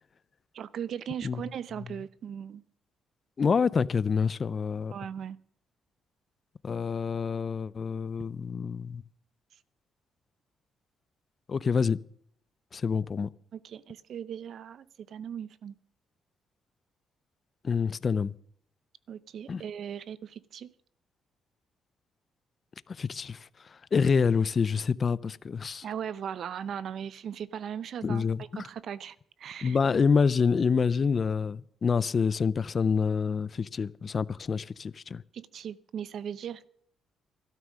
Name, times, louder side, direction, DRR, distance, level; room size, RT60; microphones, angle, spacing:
voice 1, 0.5-2.6 4.9-5.4 13.5-15.7 19.1-20.7 25.8-29.8 35.3-36.7, right 8 dB, 65° right, 0.7 m, -38 dB
voice 2, 3.4-5.0 6.6-9.0 11.5-12.0 12.7-13.3 17.6-18.3 19.5-19.6 23.0-23.4 23.9-25.8 28.0-28.7 29.6-35.2, left 5 dB, 40° left, 0.5 m, -27 dB
13.0 x 12.5 x 6.3 m
cardioid pair, 90°, 0 cm